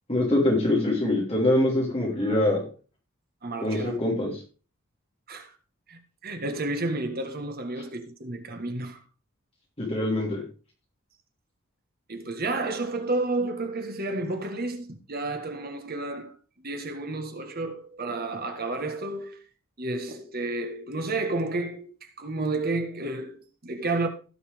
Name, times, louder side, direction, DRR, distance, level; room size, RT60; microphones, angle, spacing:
voice 1, 0.1-2.6 3.6-4.4 9.8-10.4, left 1 dB, 30° left, 3.4 m, -24 dB
voice 2, 3.4-4.0 5.3-5.6 5.9-9.0 12.1-16.4 16.6-19.4 19.8-24.1, right 2 dB, 45° right, 1.6 m, -31 dB
17.0 x 5.7 x 3.6 m
head